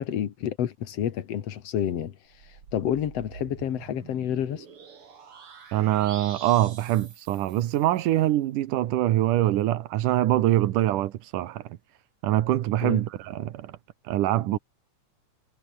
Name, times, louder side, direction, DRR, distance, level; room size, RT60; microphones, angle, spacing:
voice 1, 0.0-2.2 2.4-4.7 12.8-13.0, left 10 dB, 60° left, 2.3 m, -29 dB
sound 1, 2.3-8.1, right 6 dB, 45° right, 3.4 m, -46 dB
voice 2, 5.7-11.8 12.2-13.8 14.0-14.6, right 14 dB, 85° right, 2.7 m, -24 dB
omnidirectional pair, 3.6 m